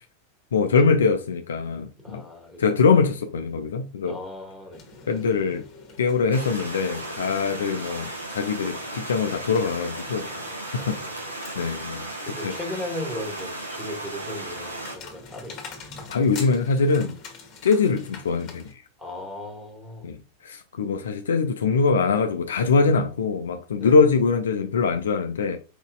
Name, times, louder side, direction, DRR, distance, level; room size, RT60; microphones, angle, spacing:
voice 1, 0.5-2.2 2.6-4.1 5.1-5.6 6.0-10.3 10.7-11.0 11.5-12.1 12.4-12.5 16.1-17.1 17.6-18.7 20.0-20.2 20.4-25.6, left 4 dB, 65° left, 0.5 m, -22 dB
voice 2, 2.0-2.7 4.0-4.9 10.3-11.3 12.2-15.6 19.0-20.1 23.8-24.1, left 1 dB, ahead, 1.6 m, -37 dB
sound 1, 4.7-18.7, left 4 dB, 35° left, 1.4 m, -45 dB
sound 2, 6.3-15.0, right 2 dB, 85° right, 1.6 m, -35 dB
4.8 x 4.0 x 2.4 m
figure-of-eight pair, 90°, 0 cm